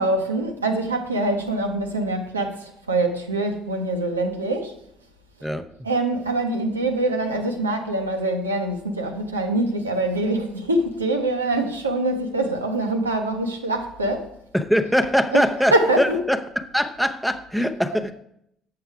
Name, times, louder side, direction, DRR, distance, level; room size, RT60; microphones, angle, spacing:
voice 1, 0.0-4.7 5.8-14.3 15.3-15.4 15.7-16.2, right 2 dB, 85° right, 0.8 m, -24 dB
voice 2, 14.5-18.1, equal, ahead, 0.7 m, -22 dB
7.9 x 6.6 x 4.8 m
figure-of-eight pair, 55°, 0 cm